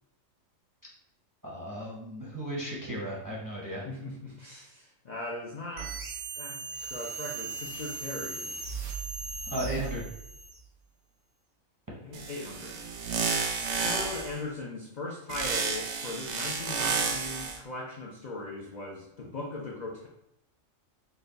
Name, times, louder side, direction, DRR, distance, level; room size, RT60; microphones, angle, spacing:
voice 1, 1.4-3.9 9.5-10.1, equal, 20° right, -4 dB, 0.6 m, -35 dB
voice 2, 3.8-8.6 12.0-12.8 13.7-20.1, left 2 dB, 55° left, -2 dB, 0.5 m, -39 dB
sound 1, 5.8-10.6, right 5 dB, 80° right, 1.1 m, -38 dB
sound 2, 12.1-14.4 15.3-17.6, right 5 dB, 65° right, 0.8 m, -31 dB
4.0 x 2.2 x 3.8 m, 0.79 s
omnidirectional pair, 1.4 m